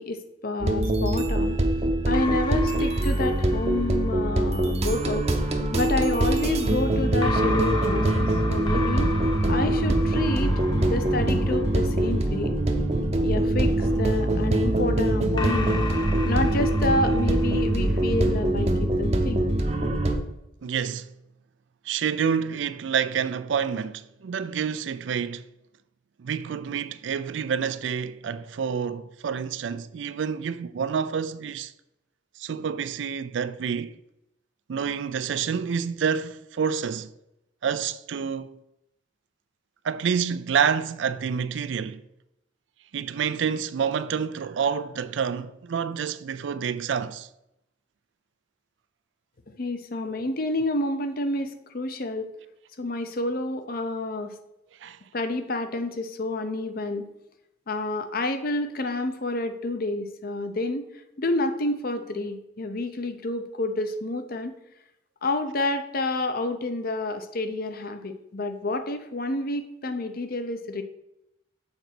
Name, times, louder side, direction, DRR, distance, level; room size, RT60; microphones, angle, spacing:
voice 1, 0.0-1.6 2.1-9.1 9.5-10.5 10.9-12.5 13.2-15.9 16.2-19.5 49.6-52.3 52.8-54.4 55.1-57.1 57.7-60.9 61.2-64.6 65.2-70.8, left 2 dB, 50° left, 0.7 m, -29 dB
sound 1, 0.6-20.2, right 1 dB, 35° right, 0.8 m, -23 dB
sound 2, 1.3-4.7 7.2-12.7 13.8-18.4, left 3 dB, 25° left, 0.9 m, -36 dB
voice 2, 20.6-21.1 21.9-25.5 26.2-31.7 32.4-34.0 34.7-37.1 37.6-38.6 39.8-42.0 42.9-47.3 54.8-55.0, right 7 dB, 75° right, 0.4 m, -28 dB
6.9 x 4.0 x 5.9 m
head